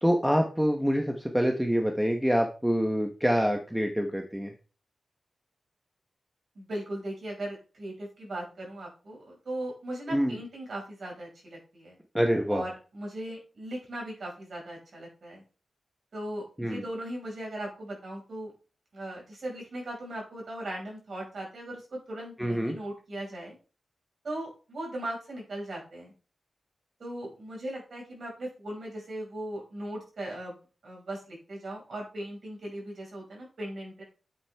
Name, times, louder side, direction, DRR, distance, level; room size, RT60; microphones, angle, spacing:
voice 1, 0.0-4.5 10.1-10.4 12.1-12.6 16.6-16.8 22.4-22.8, equal, 5° right, 3 dB, 0.9 m, -26 dB
voice 2, 6.5-12.0 12.5-15.4 16.1-18.5 18.9-23.6 24.2-26.1 27.0-30.6 30.8-34.0, right 1 dB, 55° right, -1 dB, 5.1 m, -38 dB
9.1 x 8.2 x 3.4 m, 0.36 s
wide cardioid pair, 165°, 0 cm